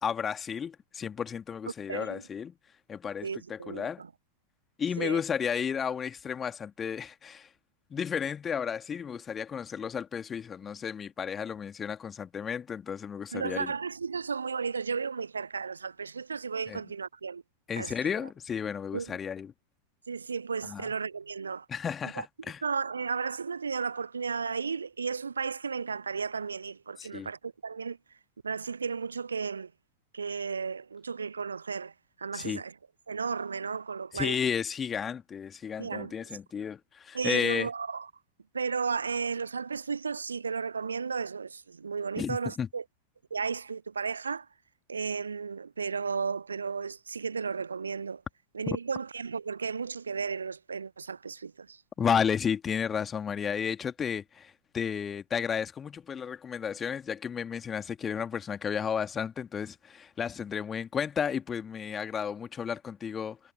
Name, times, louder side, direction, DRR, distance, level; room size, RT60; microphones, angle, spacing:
voice 1, 0.0-2.5 2.9-4.0 4.8-7.5 7.9-13.7 16.7-16.8 17.7-19.5 20.6-20.9 21.7-22.6 27.0-27.3 32.3-32.6 34.1-37.7 42.2-42.7 48.7-48.8 52.0-63.4, left 7 dB, 20° left, 2.1 m, -33 dB
voice 2, 1.9-2.2 3.2-4.1 5.0-5.2 13.3-17.4 17.8-17.9 18.9-19.2 20.1-21.7 22.0-22.3 22.6-28.0 28.4-29.7 30.1-32.7 33.1-34.4 35.8-36.1 37.1-38.1 38.5-42.8 43.3-44.5 44.9-48.2 48.5-51.8, right 5 dB, 75° right, 0.4 m, -34 dB
figure-of-eight pair, 90°, 0 cm